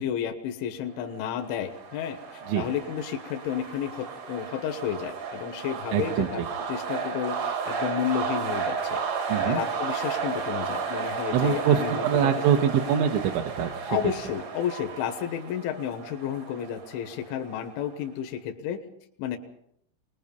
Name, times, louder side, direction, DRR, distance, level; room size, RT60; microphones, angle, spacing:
voice 1, 0.0-9.0 9.5-12.4 13.9-18.8 19.2-19.4, left 9 dB, 75° left, 5 dB, 3.4 m, -32 dB
sound 1, 1.2-17.9, right 6 dB, 50° right, 2.3 m, -33 dB
voice 2, 5.9-6.3 9.3-9.6 11.3-14.0, right 8 dB, 70° right, 2 dB, 3.4 m, -24 dB
24.5 x 20.0 x 5.4 m, 0.73 s
omnidirectional pair, 6.0 m